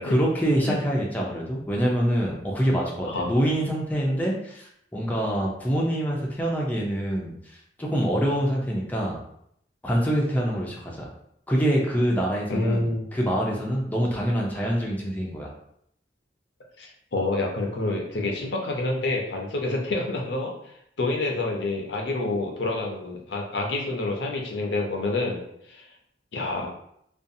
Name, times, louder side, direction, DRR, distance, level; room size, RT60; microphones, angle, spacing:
voice 1, 0.0-9.2 9.8-11.1 11.5-15.5, equal, 10° left, -3 dB, 0.4 m, -25 dB
voice 2, 12.5-13.1 16.8-25.4 25.7-25.9 26.3-26.7, left 2 dB, 70° left, 0 dB, 0.6 m, -28 dB
2.5 x 2.3 x 2.6 m, 0.72 s
head